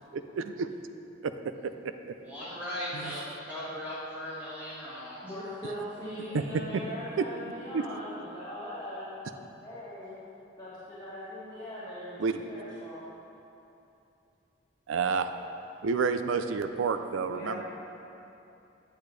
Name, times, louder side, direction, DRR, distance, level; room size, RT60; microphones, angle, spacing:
voice 1, 0.1-0.7 1.2-1.3 1.6-1.7 2.9-3.2 6.3-6.4 7.2-7.3 7.7-7.8 12.2-12.4 14.9-15.3 15.8-17.6, right 5 dB, 85° right, 9 dB, 0.4 m, -29 dB
voice 2, 2.1-5.2, equal, 10° right, -10 dB, 2.0 m, -38 dB
voice 3, 5.2-9.1 9.6-10.2 10.6-13.0 17.2-17.6, equal, 20° left, -13 dB, 1.5 m, -40 dB
8.6 x 8.3 x 3.2 m, 2.9 s
head